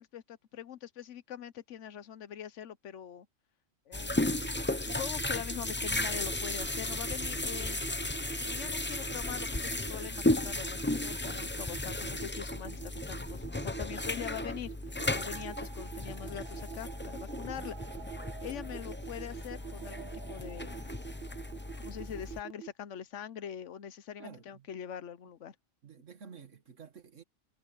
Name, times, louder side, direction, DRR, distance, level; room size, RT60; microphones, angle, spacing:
voice 1, 0.0-3.3 3.9-4.4 4.7-7.8 8.4-14.7 15.0-17.9 18.4-21.1 21.8-25.5, left 9 dB, 75° left, 1.1 m, -43 dB
sound 1, 3.9-22.4, left 2 dB, 10° left, 0.6 m, -35 dB
sound 2, 4.4-22.7, right 10 dB, 60° right, 0.7 m, -45 dB
sound 3, 14.9-22.6, right 7 dB, 35° right, 2.5 m, -52 dB
voice 2, 24.2-24.7 25.8-27.2, right 5 dB, 80° right, 2.1 m, -50 dB
omnidirectional pair, 1.3 m